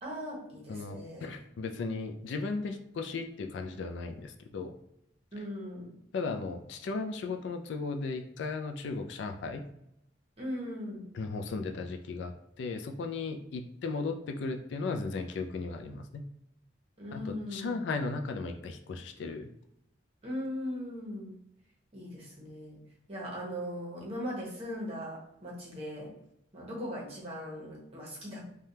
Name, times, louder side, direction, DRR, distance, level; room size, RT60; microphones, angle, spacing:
voice 1, 0.0-1.3 5.3-6.0 10.4-11.1 17.0-17.7 20.2-21.3 21.9-22.8 23.1-26.2 26.5-28.5, equal, 30° right, -3 dB, 0.9 m, -39 dB
voice 2, 0.7-4.7 6.1-9.6 11.1-16.2 17.1-19.5, left 3 dB, 65° left, 5 dB, 0.3 m, -36 dB
3.3 x 2.2 x 2.7 m, 0.79 s
head